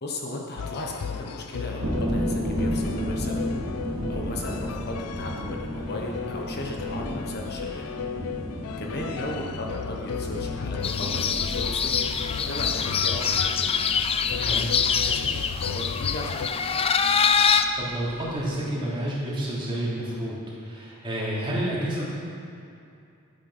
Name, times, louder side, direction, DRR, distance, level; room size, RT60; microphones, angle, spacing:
voice 1, 0.0-3.4 3.8-7.8 8.8-13.7 14.2-16.9, left 1 dB, 45° left, 0 dB, 1.2 m, -36 dB
sound 1, 0.6-16.5, left 7 dB, 85° left, 0.4 m, -35 dB
sound 2, 1.8-18.5, equal, 60° right, 3.0 m, -34 dB
sound 3, 10.8-17.7, left 6 dB, 25° left, 0.4 m, -24 dB
voice 2, 14.3-14.6 17.8-22.1, right 1 dB, 25° right, -7 dB, 3.1 m, -30 dB
12.5 x 9.0 x 5.6 m, 2.6 s
head